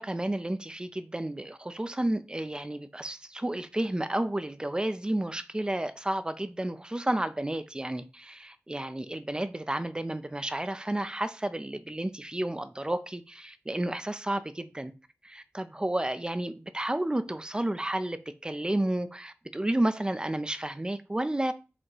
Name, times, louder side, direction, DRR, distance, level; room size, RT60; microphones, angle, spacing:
voice 1, 0.0-14.9 15.2-21.5, right 1 dB, 20° right, 0.6 m, -31 dB
7.7 x 4.2 x 3.0 m
wide cardioid pair, 70°, 5 cm